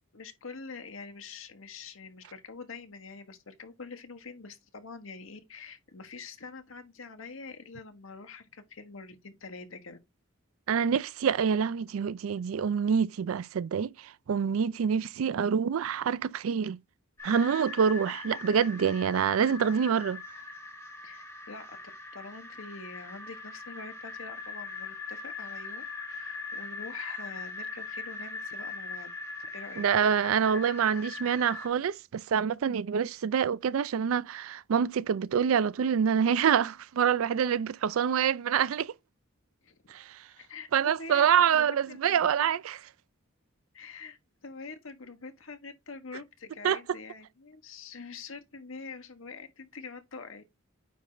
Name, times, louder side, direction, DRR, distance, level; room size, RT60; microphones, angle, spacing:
voice 1, 0.1-10.0 21.0-21.8 22.1-29.1 29.5-29.9 39.6-39.9 40.4-42.3 43.7-50.4, left 4 dB, 75° left, 1.2 m, -45 dB
voice 2, 10.7-16.8 17.2-20.2 29.8-38.9 39.9-40.2 40.7-42.8 46.6-46.8, right 7 dB, 85° right, 0.4 m, -26 dB
sound 1, 17.2-31.7, left 3 dB, 10° left, 1.8 m, -41 dB
9.3 x 3.2 x 3.8 m
head